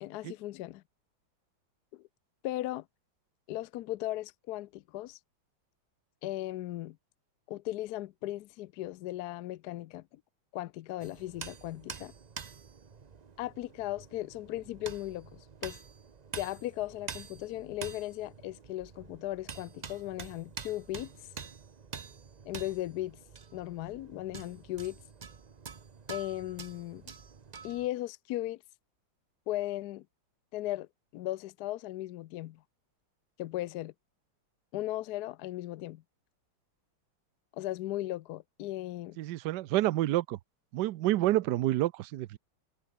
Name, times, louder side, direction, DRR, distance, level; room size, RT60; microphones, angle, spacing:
voice 1, 0.0-0.8 1.9-2.0 2.4-2.8 3.5-5.2 6.2-7.0 7.5-10.0 10.5-12.1 13.4-15.8 16.3-21.1 22.5-23.2 23.5-25.0 26.1-27.0 27.6-28.6 29.5-30.0 30.5-30.9 31.1-32.6 33.4-33.9 34.7-36.0 37.5-39.2, left 15 dB, 75° left, 1.0 m, -37 dB
sound 1, 11.0-27.9, right 6 dB, 55° right, 0.4 m, -47 dB
voice 2, 39.2-40.4 40.7-42.4, right 15 dB, 70° right, 1.2 m, -28 dB
omnidirectional pair, 2.1 m